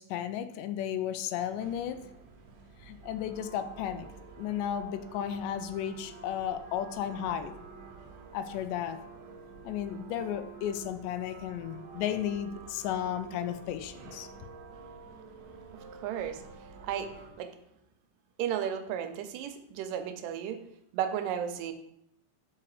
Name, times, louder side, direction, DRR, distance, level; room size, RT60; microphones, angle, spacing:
voice 1, 0.0-2.0 2.8-4.1 4.4-7.5 8.3-9.0 9.6-14.3, left 10 dB, 85° left, 11 dB, 2.1 m, -34 dB
sound 1, 1.5-17.3, right 4 dB, 70° right, 2.0 m, -49 dB
voice 2, 15.7-16.4 16.8-17.1 17.4-17.5 18.4-20.6 20.9-21.7, right 9 dB, 85° right, 8 dB, 2.3 m, -34 dB
5.7 x 5.1 x 4.8 m, 0.78 s
omnidirectional pair, 3.8 m